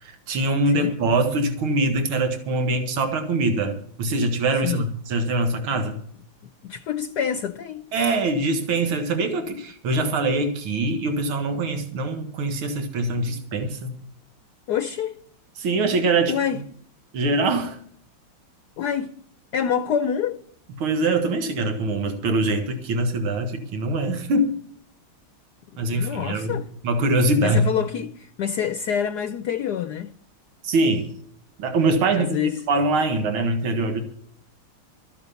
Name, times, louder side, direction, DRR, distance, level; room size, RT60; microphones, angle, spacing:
voice 1, 0.0-6.0 7.9-13.9 15.6-16.4 17.1-17.8 20.8-24.5 25.8-26.6 26.8-27.7 30.6-31.1 31.6-32.4 32.7-34.0, right 2 dB, 80° right, 2.5 m, -23 dB
voice 2, 6.6-7.9 14.7-15.1 16.3-16.6 18.8-19.1 19.5-20.4 25.7-26.7 27.4-30.1 32.2-32.6, left 8 dB, 65° left, 1.1 m, -27 dB
14.0 x 8.4 x 7.0 m
omnidirectional pair, 2.3 m